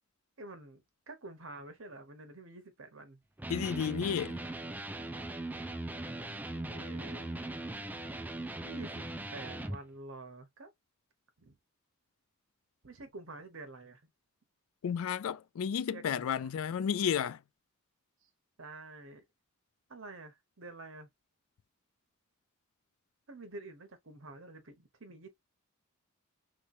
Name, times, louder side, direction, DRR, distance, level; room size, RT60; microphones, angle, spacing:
voice 1, 0.4-3.2 6.5-7.3 8.6-10.7 11.4-11.6 12.8-14.1 15.9-16.5 18.6-19.2 19.9-21.1 23.3-25.3, right 2 dB, 65° right, 1.0 m, -48 dB
Electric guitar, 3.4-9.8, right 1 dB, 10° right, 0.3 m, -39 dB
voice 2, 3.5-4.4 14.8-17.4, left 8 dB, 75° left, 0.3 m, -32 dB
3.2 x 3.0 x 2.6 m
head